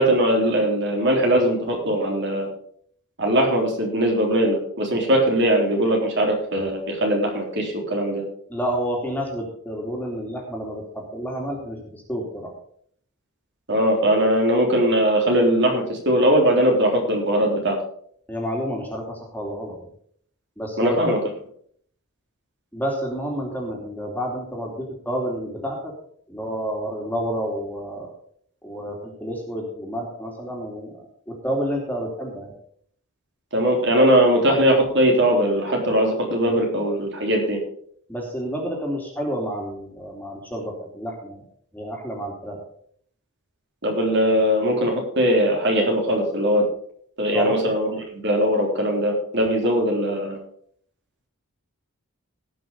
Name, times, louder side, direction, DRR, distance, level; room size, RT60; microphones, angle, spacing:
voice 1, 0.0-2.5 3.2-8.2 13.7-17.8 20.8-21.2 33.5-37.6 43.8-46.6 47.2-50.4, equal, 55° right, 0 dB, 3.6 m, -20 dB
voice 2, 8.5-12.5 18.3-19.9 20.6-21.0 22.7-25.9 26.3-28.1 28.6-30.9 31.3-32.5 38.1-41.4 41.7-42.6 47.3-47.5, equal, 10° left, 0 dB, 2.8 m, -29 dB
18.5 x 6.2 x 5.3 m, 0.62 s
head